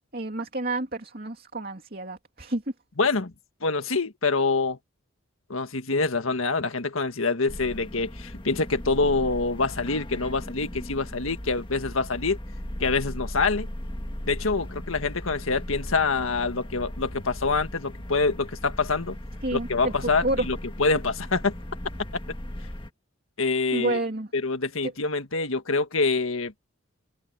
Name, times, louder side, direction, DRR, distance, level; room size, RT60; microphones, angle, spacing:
voice 1, 0.1-2.6 19.4-20.5 23.5-24.3 24.8-24.9, right 2 dB, 45° right, 2.8 m, -30 dB
voice 2, 3.0-3.3 3.6-4.8 5.5-12.4 12.8-13.7 14.3-19.2 19.5-21.5 23.4-24.0 24.4-26.5, left 3 dB, 80° left, 1.7 m, -26 dB
sound 1, 7.5-22.9, equal, 25° left, 1.7 m, -37 dB
head